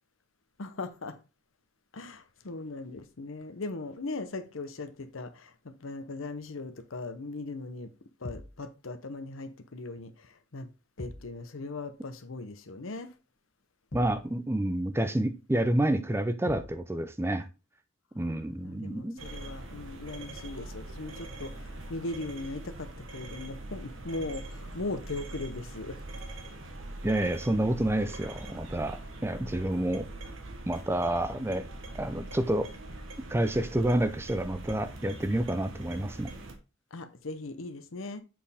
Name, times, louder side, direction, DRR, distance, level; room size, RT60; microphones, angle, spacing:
voice 1, 0.6-1.2 1.9-7.9 8.2-10.7 11.0-13.1 18.1-26.0 29.4-29.7 36.9-38.2, left 2 dB, 80° left, 0.9 m, -39 dB
sound 1, 8.2-8.6 11.0-11.4 13.9-14.3 16.5-16.8, left 1 dB, 45° left, 1.0 m, -42 dB
voice 2, 13.9-17.5 18.1-19.2 27.0-30.1 30.7-31.6 32.0-32.7 33.3-36.3, right 1 dB, 10° right, 0.5 m, -29 dB
sound 2, 19.2-36.5, right 2 dB, 75° right, 1.2 m, -43 dB
7.6 x 4.4 x 3.5 m
head